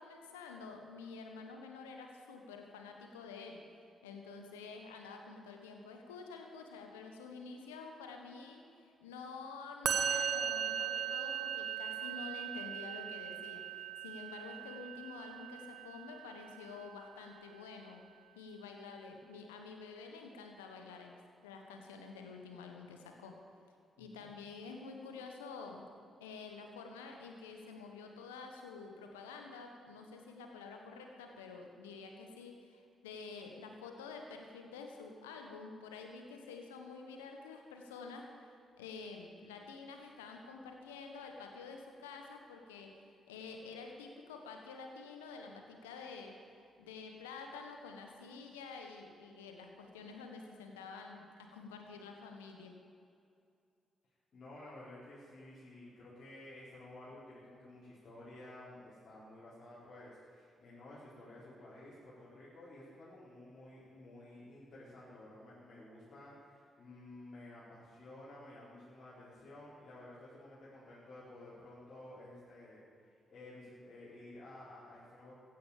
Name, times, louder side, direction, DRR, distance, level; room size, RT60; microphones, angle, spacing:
voice 1, 0.0-3.6 4.0-18.0 18.3-23.4 24.0-25.9 26.2-38.5 38.8-42.9 43.3-52.7, left 4 dB, 85° left, 3 dB, 1.4 m, -49 dB
Musical instrument, 9.8-17.1, right 8 dB, 60° right, 1.2 m, -38 dB
voice 2, 54.3-75.4, left 1 dB, 50° left, -10 dB, 4.8 m, -53 dB
15.5 x 10.5 x 7.4 m, 2.5 s
hypercardioid pair, 40°, 0 cm